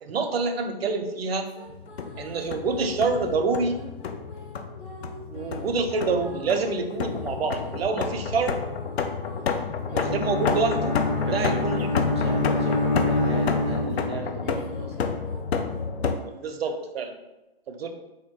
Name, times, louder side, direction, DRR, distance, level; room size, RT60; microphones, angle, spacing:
voice 1, 0.0-1.6 2.2-3.8 5.3-8.6 9.9-11.9 16.3-17.1 17.7-17.9, right 4 dB, 75° right, 5 dB, 0.6 m, -27 dB
sound 1, 1.4-13.9 14.4-15.4, equal, 55° left, 1.0 m, -46 dB
sound 2, 1.7-16.2, left 5 dB, 85° left, 0.5 m, -30 dB
Bowed string instrument, 9.9-14.4, left 2 dB, 30° left, 0.5 m, -26 dB
voice 2, 11.3-11.6 12.1-14.9, right 3 dB, 30° right, 0 dB, 0.4 m, -35 dB
2.8 x 2.6 x 3.6 m, 1.0 s
hypercardioid pair, 150°, 30 cm